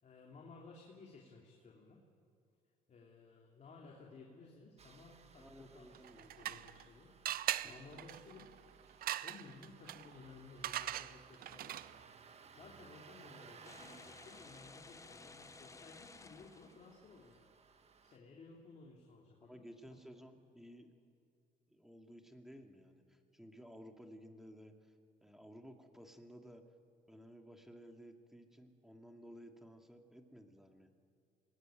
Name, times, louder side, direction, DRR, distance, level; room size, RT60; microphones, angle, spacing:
voice 1, 0.0-2.0 2.9-7.1 7.6-8.5 9.2-11.8 12.5-17.5 18.0-19.6, left 4 dB, 45° left, -1 dB, 3.1 m, -57 dB
Engine starting, 4.8-18.2, right 5 dB, 40° right, 1.7 m, -61 dB
voice 2, 5.4-6.5 7.6-8.0 19.4-20.9 21.7-24.9 25.2-26.6 27.1-30.9, equal, ahead, 4 dB, 2.3 m, -56 dB
sound 1, 5.9-6.9 7.3-12.1, right 13 dB, 60° right, 0.6 m, -42 dB
sound 2, 13.6-17.3, left 3 dB, 20° left, 0.9 m, -56 dB
26.0 x 19.5 x 9.2 m, 2.5 s
cardioid pair, 110°, 17 cm